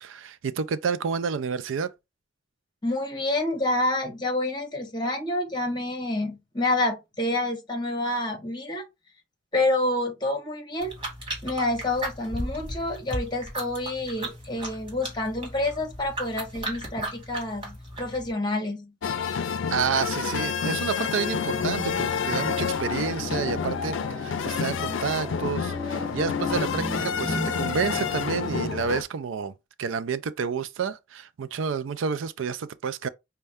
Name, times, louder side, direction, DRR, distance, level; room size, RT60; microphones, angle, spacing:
voice 1, 0.0-1.9 19.7-33.1, right 6 dB, 80° right, 0.4 m, -30 dB
voice 2, 2.8-8.8 9.5-10.9 11.4-18.9, left 2 dB, 25° left, 1.2 m, -28 dB
sound 1, 10.8-18.3, right 1 dB, 25° right, 2.0 m, -36 dB
sound 2, 19.0-29.0, left 6 dB, 80° left, 0.5 m, -29 dB
sound 3, 21.4-28.7, left 1 dB, ahead, 0.6 m, -36 dB
5.3 x 2.2 x 3.4 m
head